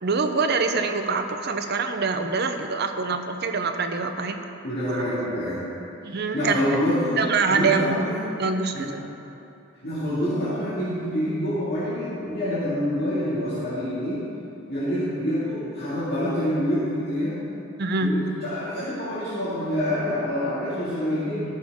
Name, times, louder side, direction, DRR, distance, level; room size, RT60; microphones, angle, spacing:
voice 1, 0.0-4.4 4.9-5.0 6.0-6.6 7.2-8.0 8.4-9.0 17.8-18.1, right 4 dB, 55° right, 6 dB, 0.7 m, -25 dB
voice 2, 4.6-5.7 6.1-8.2 8.7-9.0 9.8-14.3 14.7-17.4 18.0-21.5, equal, 50° left, -11 dB, 2.2 m, -27 dB
14.5 x 6.6 x 3.6 m, 2.8 s
head